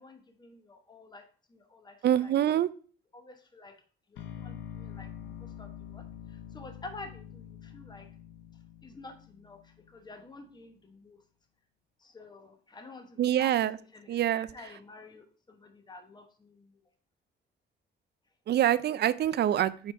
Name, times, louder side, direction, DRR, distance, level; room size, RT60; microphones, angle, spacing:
voice 1, 0.0-2.3 3.1-3.7 4.1-8.1 8.8-11.2 12.0-16.8, left 2 dB, 20° left, 6 dB, 1.1 m, -50 dB
voice 2, 2.0-2.7 13.2-13.8 14.1-14.5 18.5-19.9, right 11 dB, 55° right, 16 dB, 0.4 m, -25 dB
sound 1, 4.2-10.2, left 9 dB, 70° left, 0.6 m, -45 dB
4.7 x 4.3 x 5.4 m, 0.42 s
cardioid pair, 90°, 20 cm